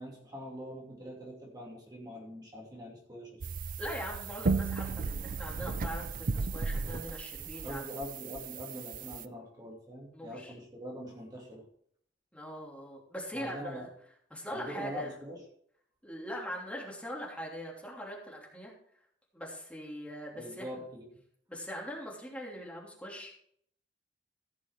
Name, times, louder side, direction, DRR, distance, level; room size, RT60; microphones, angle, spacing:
voice 1, 0.0-3.4 7.6-11.6 13.3-13.9 14.5-15.4 20.3-21.0, equal, 25° right, -2 dB, 2.6 m, -43 dB
sound 1, 3.4-9.2, right 4 dB, 50° right, 0.5 m, -35 dB
voice 2, 3.8-7.9 10.1-10.5 12.3-13.9 14.3-15.1 16.0-18.7 19.3-20.8 21.5-23.3, equal, 5° left, -3 dB, 3.0 m, -41 dB
15.5 x 6.2 x 4.8 m, 0.64 s
head